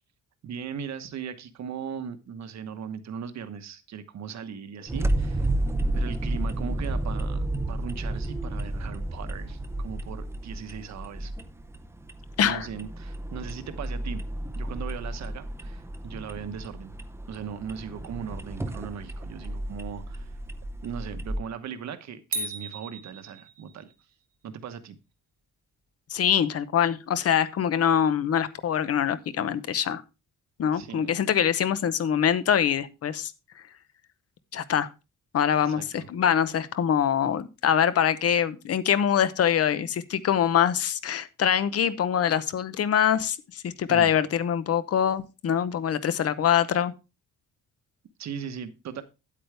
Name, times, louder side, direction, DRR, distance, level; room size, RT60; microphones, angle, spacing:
voice 1, 0.4-5.5 5.9-11.3 12.4-14.2 14.6-17.0 17.3-20.4 20.8-23.9 24.4-24.9 30.7-31.1 35.6-36.1 43.9-44.1 48.2-49.0, right 7 dB, 55° right, 1.1 m, -38 dB
sound 1, 4.9-21.4, right 1 dB, 10° right, 0.6 m, -32 dB
sound 2, 22.3-23.9, right 2 dB, 25° right, 1.1 m, -35 dB
voice 2, 26.1-30.0 30.6-33.3 34.5-34.9 35.3-46.9, left 9 dB, 50° left, 0.8 m, -24 dB
9.5 x 8.5 x 3.4 m
wide cardioid pair, 175°, 32 cm